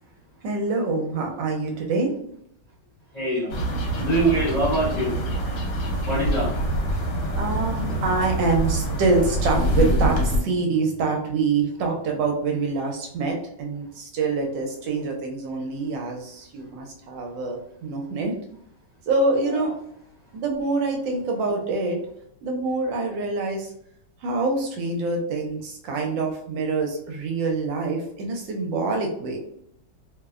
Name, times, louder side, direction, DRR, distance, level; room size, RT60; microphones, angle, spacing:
voice 1, 0.4-2.1 7.4-18.3 19.1-19.7 20.3-22.0 22.4-23.7 24.2-29.4, right 3 dB, 80° right, 2 dB, 1.3 m, -25 dB
voice 2, 3.1-3.5 4.0-5.2 6.0-6.5, right 2 dB, 35° left, -9 dB, 0.7 m, -23 dB
sound 1, 3.5-10.4, right 1 dB, 75° left, 1.3 m, -25 dB
3.1 x 2.0 x 2.3 m, 0.71 s
omnidirectional pair, 2.0 m